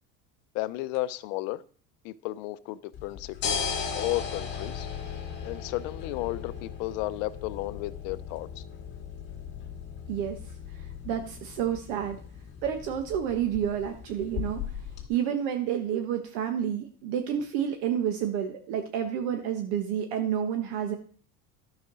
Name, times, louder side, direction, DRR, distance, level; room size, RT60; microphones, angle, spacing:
voice 1, 0.5-1.6 2.0-3.7 3.9-4.9 5.4-8.6, left 17 dB, 60° left, 0.7 m, -33 dB
sound 1, 2.9-15.0, left 7 dB, 30° left, 2.3 m, -37 dB
voice 2, 11.0-12.2 12.6-14.6 15.1-21.0, right 9 dB, 60° right, 1.4 m, -29 dB
12.5 x 5.0 x 6.2 m
cardioid pair, 180°, 34 cm